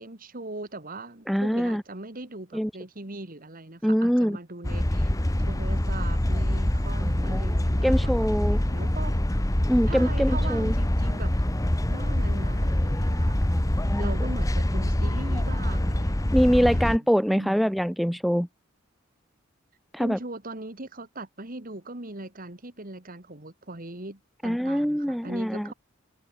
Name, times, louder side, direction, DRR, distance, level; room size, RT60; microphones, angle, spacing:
voice 1, 0.0-5.1 5.4-9.1 9.9-11.3 11.9-13.4 14.0-16.9 17.3-17.6 20.0-25.7, right 2 dB, 45° right, 2.6 m, -40 dB
voice 2, 1.3-1.8 2.5-2.7 3.8-4.4 7.0-7.4 7.8-8.6 9.7-10.7 13.5-14.1 16.3-18.5 19.9-20.2 24.4-25.7, equal, ahead, 0.6 m, -24 dB
sound 1, 4.6-17.0, left 1 dB, 15° left, 1.0 m, -25 dB
head